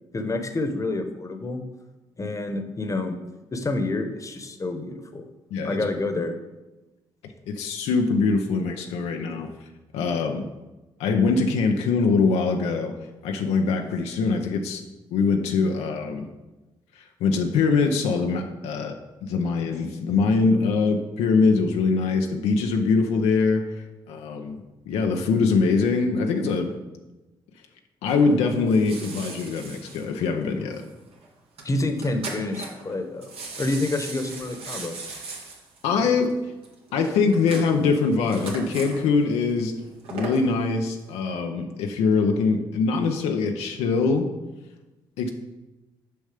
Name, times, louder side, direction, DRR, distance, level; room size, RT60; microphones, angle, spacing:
voice 1, 0.1-1.6 2.2-3.2 3.5-5.3 5.6-6.4 31.6-33.3 33.6-35.0, left 2 dB, 30° left, 7 dB, 1.0 m, -28 dB
voice 2, 7.5-9.5 9.9-10.4 11.0-12.9 13.2-14.8 15.1-16.3 16.9-19.0 19.2-26.7 28.0-30.9 35.8-36.3 36.9-39.7 40.1-44.3 45.2-45.3, left 4 dB, 85° left, 4 dB, 0.6 m, -23 dB
sound 1, 28.1-30.9 31.1-31.3 31.6-31.7 31.9-33.0 33.2-39.0 39.8-40.5 41.0-41.1, right 3 dB, 70° right, 1.7 m, -37 dB
6.8 x 5.4 x 5.0 m, 1.1 s
supercardioid pair, 60°, 10 cm